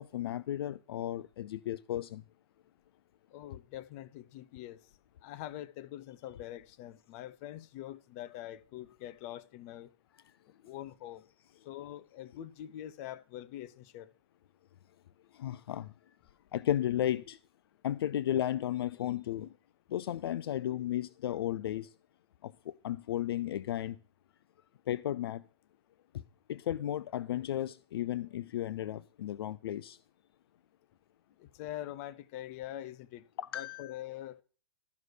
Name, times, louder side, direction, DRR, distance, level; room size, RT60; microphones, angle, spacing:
voice 1, 0.0-2.2 15.3-15.9 16.5-17.4 17.8-19.5 19.9-21.9 22.4-24.0 24.9-25.4 26.5-30.0 33.4-34.0, left 12 dB, 60° left, 0.5 m, -34 dB
voice 2, 3.3-4.8 5.2-9.9 10.6-11.2 11.6-14.1 31.4-33.2 33.5-34.4, left 13 dB, 35° left, 0.9 m, -44 dB
13.0 x 6.3 x 6.7 m
hypercardioid pair, 145°, 14 cm